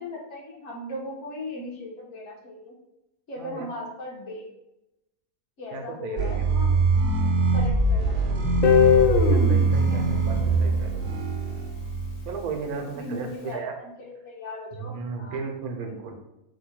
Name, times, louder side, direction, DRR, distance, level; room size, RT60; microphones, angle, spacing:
voice 1, 0.0-2.7 3.3-4.5 5.6-6.8 7.2-8.5 9.9-10.5 12.7-13.7 14.0-15.4 15.9-16.1, left 1 dB, 55° left, -4 dB, 1.2 m, -38 dB
voice 2, 3.4-3.7 5.7-6.8 9.0-11.2 12.3-13.7 14.7-16.1, right 5 dB, 80° right, 3 dB, 1.2 m, -35 dB
sound 1, 6.2-12.4, right 3 dB, 55° right, 0.7 m, -23 dB
Guitar, 8.6-11.6, left 8 dB, 70° left, 0.9 m, -23 dB
4.8 x 2.2 x 4.4 m, 0.90 s
omnidirectional pair, 1.6 m